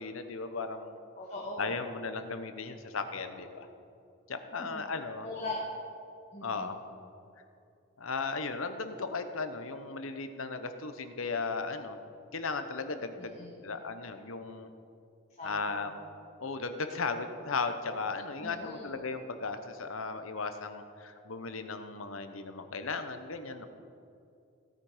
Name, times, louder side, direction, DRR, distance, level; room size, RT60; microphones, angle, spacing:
voice 1, 0.0-1.0 1.6-3.7 4.3-5.3 6.4-6.8 8.0-12.0 12.3-14.7 15.4-15.9 16.4-23.7, left 4 dB, 85° left, 8 dB, 1.0 m, -36 dB
voice 2, 1.2-1.7 4.7-4.8 5.2-5.6 6.3-6.7 13.2-13.6 15.4-15.8 18.4-18.9, left 2 dB, 35° left, -6 dB, 1.9 m, -40 dB
16.5 x 9.1 x 5.0 m, 2.5 s
head